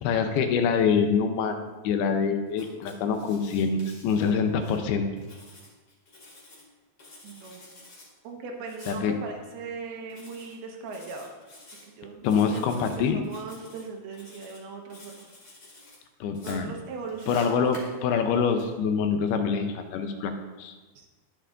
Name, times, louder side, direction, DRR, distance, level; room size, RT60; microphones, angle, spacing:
voice 1, 0.0-5.1 8.9-9.1 12.2-13.2 16.2-16.7 17.3-20.3 20.6-20.7, left 6 dB, 80° left, 6 dB, 2.6 m, -25 dB
Writing, 2.5-4.8 5.2-6.6 7.0-8.1 8.7-9.0 10.1-10.6 10.9-11.8 12.2-13.0 13.2-13.8 14.1-14.6 14.9-16.0 16.3-18.6, left 2 dB, 35° left, 2.4 m, -50 dB
voice 2, 7.2-7.7 8.2-11.3 11.8-12.6 12.9-15.3 16.4-17.6 21.0-21.1, right 4 dB, 75° right, 1 dB, 2.9 m, -39 dB
20.0 x 6.7 x 2.5 m, 1.2 s
omnidirectional pair, 4.7 m